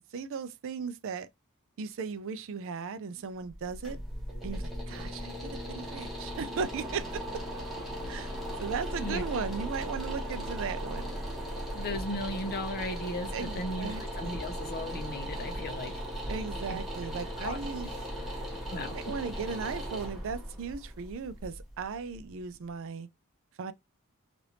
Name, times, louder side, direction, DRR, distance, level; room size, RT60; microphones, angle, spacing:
voice 1, 0.1-1.3 1.8-4.0 4.4-5.3 5.7-7.2 8.1-8.3 8.6-11.1 13.3-14.4 16.3-17.9 18.9-23.1 23.6-23.7, right 5 dB, 60° right, 0.4 m, -37 dB
sound 1, 3.4-22.4, equal, ahead, 1.1 m, -37 dB
voice 2, 11.7-15.9 16.7-16.8 17.4-17.6 18.0-19.1, left 1 dB, 45° left, 0.7 m, -37 dB
3.3 x 2.5 x 2.8 m
head